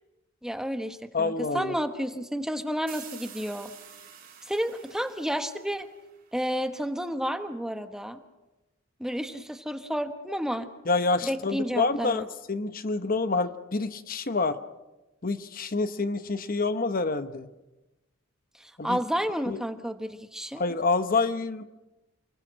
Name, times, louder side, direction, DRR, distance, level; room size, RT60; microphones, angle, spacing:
voice 1, 0.4-3.7 4.5-5.9 6.3-8.2 9.0-10.7 11.2-12.3 18.6-20.6, equal, 5° right, 8 dB, 1.1 m, -31 dB
voice 2, 1.1-1.8 10.9-14.6 15.2-17.5 18.8-19.0 19.5-19.6 20.6-21.6, left 3 dB, 45° left, 11 dB, 0.9 m, -27 dB
sound 1, 2.9-6.5, right 9 dB, 45° right, 5.4 m, -48 dB
29.0 x 21.5 x 6.3 m, 1.0 s
head